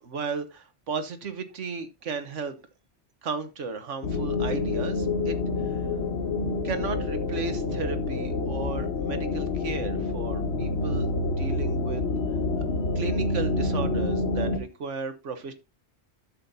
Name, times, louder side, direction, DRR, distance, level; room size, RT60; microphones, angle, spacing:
voice 1, 0.0-2.6 3.2-5.8 6.6-12.0 12.9-15.5, right 5 dB, 85° right, 9 dB, 1.5 m, -35 dB
sound 1, 4.0-14.6, left 3 dB, 60° left, 1.3 m, -28 dB
11.5 x 7.7 x 2.7 m, 0.24 s
omnidirectional pair, 1.2 m